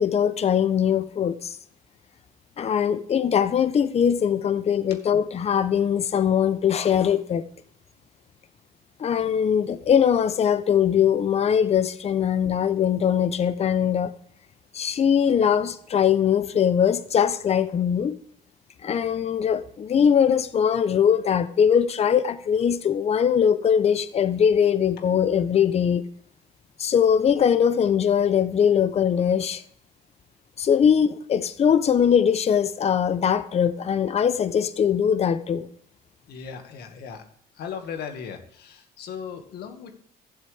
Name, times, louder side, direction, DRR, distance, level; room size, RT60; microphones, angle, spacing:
voice 1, 0.0-1.6 2.6-7.4 9.0-14.1 14.7-18.2 18.8-26.0 26.8-29.6 30.6-35.7, left 8 dB, 40° left, 0.8 m, -21 dB
voice 2, 36.3-37.2 37.5-40.0, left 7 dB, 70° left, 1.9 m, -37 dB
14.5 x 7.7 x 3.5 m
cardioid pair, 110°, 17 cm